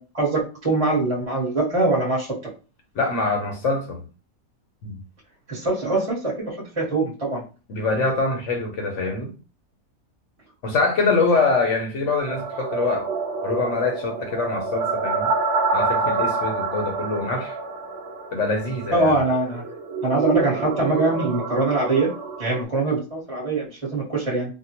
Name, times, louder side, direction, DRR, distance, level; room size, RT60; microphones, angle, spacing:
voice 1, 0.0-2.3 5.5-7.4 18.9-19.6 20.0-22.1 22.4-24.5, right 2 dB, 25° right, 0.9 m, -23 dB
voice 2, 2.9-4.0 4.8-5.0 7.7-9.3 10.6-13.1 13.4-15.3 15.7-17.5 18.3-19.1, left 3 dB, 60° left, 1.0 m, -24 dB
sound 1, 12.2-22.6, right 3 dB, 65° right, 0.7 m, -28 dB
3.6 x 2.0 x 2.8 m
omnidirectional pair, 1.6 m